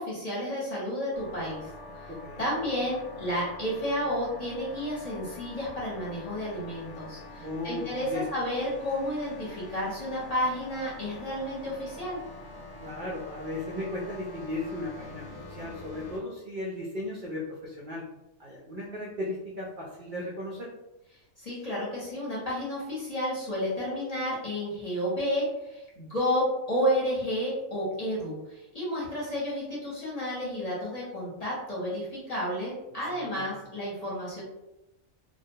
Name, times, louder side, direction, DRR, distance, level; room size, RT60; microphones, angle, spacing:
voice 1, 0.0-1.7 2.0-2.1 2.4-12.2 21.4-34.4, equal, 35° left, -7 dB, 0.7 m, -31 dB
sound 1, 1.1-16.2, left 2 dB, 70° left, 0.8 m, -45 dB
voice 2, 2.1-2.4 7.4-8.3 12.8-18.0 18.4-20.7 33.1-33.5, left 1 dB, 70° right, -4 dB, 0.4 m, -36 dB
2.3 x 2.1 x 2.7 m, 0.93 s
omnidirectional pair, 1.4 m